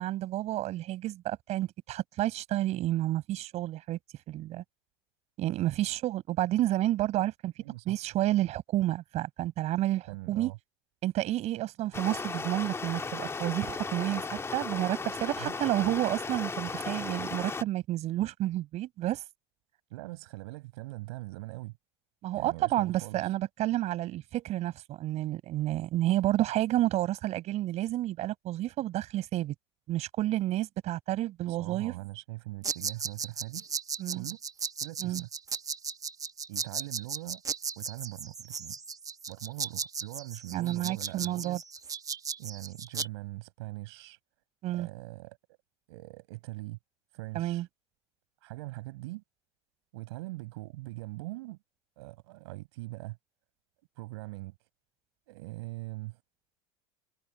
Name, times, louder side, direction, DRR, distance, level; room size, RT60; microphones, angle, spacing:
voice 1, 0.0-4.0 4.3-4.6 5.4-7.5 7.9-10.5 11.0-14.2 14.5-19.2 22.2-29.5 29.9-31.9 34.0-34.3 35.0-35.2 40.5-41.6 44.6-44.9 47.3-47.7, right 14 dB, 50° right, 5.3 m, -30 dB
voice 2, 7.6-8.0 10.1-10.6 15.4-15.5 15.8-15.9 19.9-21.7 22.3-23.3 31.5-33.7 34.1-34.4 34.8-35.3 36.5-37.4 37.8-38.8 39.3-41.6 42.4-44.2 44.7-45.4 45.9-46.8 47.1-47.6 48.4-49.2 49.9-51.6 52.0-53.2 54.0-54.5 55.3-56.2, right 21 dB, 75° right, 5.2 m, -41 dB
Stream, 11.9-17.6, left 4 dB, 20° left, 2.0 m, -36 dB
sound 1, 32.6-43.1, right 6 dB, 25° right, 1.2 m, -36 dB
hypercardioid pair, 90°, 14 cm